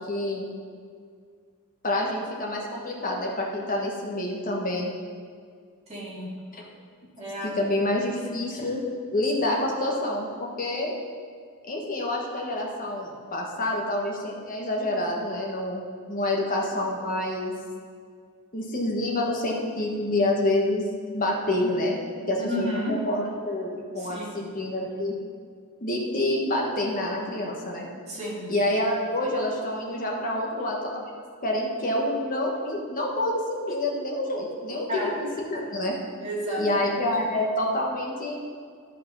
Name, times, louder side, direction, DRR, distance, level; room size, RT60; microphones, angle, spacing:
voice 1, 0.1-0.5 1.8-4.9 6.5-6.6 7.4-8.8 9.1-10.3 10.6-10.9 11.6-15.8 16.1-17.5 18.5-20.8 21.1-22.0 22.3-25.1 25.8-27.9 28.5-35.9 36.6-38.3, left 1 dB, 40° left, -1 dB, 1.4 m, -27 dB
voice 2, 5.9-6.3 7.2-7.5 22.4-23.0 24.0-24.3 28.1-28.5 34.9-35.1 36.2-36.8, equal, 30° right, -6 dB, 2.5 m, -31 dB
11.5 x 5.2 x 5.5 m, 2.1 s
head